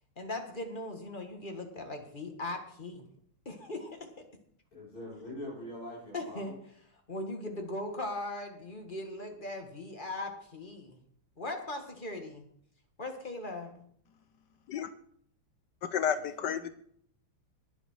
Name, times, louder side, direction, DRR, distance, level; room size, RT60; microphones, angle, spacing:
voice 1, 0.2-3.0 3.5-4.0 6.1-6.5 7.1-11.0 11.4-12.4 13.0-13.9, left 2 dB, 25° left, 3 dB, 1.9 m, -39 dB
voice 2, 4.7-6.6 16.1-16.7, left 1 dB, 45° left, -7 dB, 7.3 m, -44 dB
voice 3, 15.8-16.7, left 8 dB, 70° left, 12 dB, 1.1 m, -31 dB
20.0 x 7.2 x 4.7 m, 0.63 s
omnidirectional pair, 2.4 m